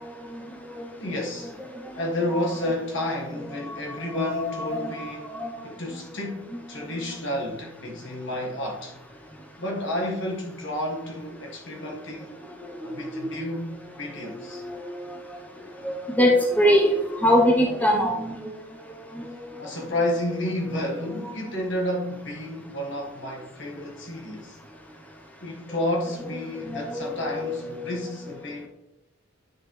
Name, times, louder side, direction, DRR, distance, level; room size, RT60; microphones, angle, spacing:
voice 1, 0.0-0.9 1.6-1.8 3.7-5.6 12.5-12.7 14.2-14.9 15.8-18.5 19.1-19.5 26.5-28.0, equal, 10° left, 0.8 m, -25 dB
voice 2, 1.0-1.6 2.0-9.0 9.6-12.4 12.8-14.7 19.6-24.6 25.4-28.7, left 1 dB, 60° left, 1.6 m, -31 dB
9.7 x 6.1 x 3.2 m
head